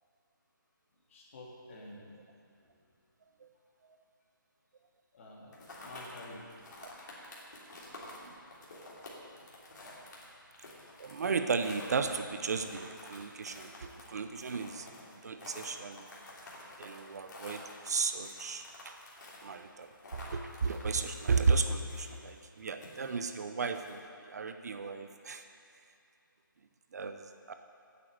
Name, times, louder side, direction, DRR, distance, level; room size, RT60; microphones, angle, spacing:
voice 1, 1.1-2.2 2.6-2.9 5.1-6.5, left 1 dB, 40° left, -3 dB, 2.4 m, -50 dB
sound 1, 5.5-24.0, left 2 dB, 55° left, 3.2 m, -50 dB
voice 2, 11.0-14.9 15.2-16.1 16.8-19.0 19.4-25.4 26.9-27.5, right 4 dB, 50° right, 8 dB, 0.7 m, -34 dB
9.4 x 8.4 x 7.6 m, 2.4 s
hypercardioid pair, 165°, 12 cm